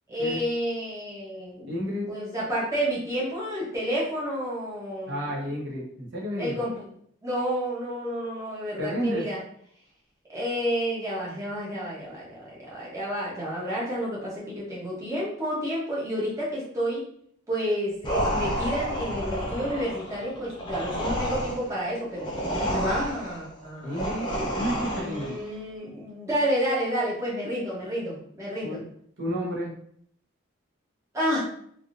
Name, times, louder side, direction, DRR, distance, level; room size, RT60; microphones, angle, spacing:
voice 1, 0.1-1.7 2.1-5.3 6.4-6.8 7.2-9.4 10.3-17.0 17.5-22.3 22.7-24.2 24.9-28.8 31.1-31.4, equal, 15° right, -7 dB, 0.9 m, -30 dB
voice 2, 1.7-2.1 5.1-6.6 8.8-9.2 23.8-25.4 28.6-28.9 29.2-29.7, equal, 60° right, -4 dB, 0.9 m, -31 dB
sound 1, 18.0-25.4, equal, 20° left, 0.6 m, -30 dB
3.4 x 2.5 x 2.5 m, 0.64 s
head